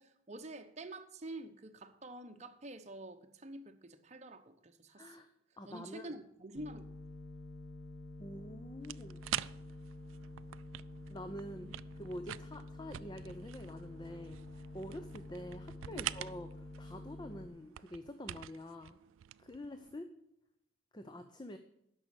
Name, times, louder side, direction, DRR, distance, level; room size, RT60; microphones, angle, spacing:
voice 1, 0.0-5.2 5.7-6.8 11.6-11.7 15.9-16.1, right 1 dB, 35° right, 7 dB, 0.9 m, -48 dB
voice 2, 5.0-5.3 5.6-6.1 8.2-9.2 11.1-11.7 11.9-19.0 19.4-20.1 20.9-21.6, left 1 dB, 20° left, 8 dB, 0.6 m, -46 dB
sound 1, 6.6-17.5, left 2 dB, 90° left, 1.4 m, -49 dB
sound 2, 8.8-20.0, right 13 dB, 85° right, 0.3 m, -46 dB
10.5 x 6.3 x 7.8 m, 0.78 s
head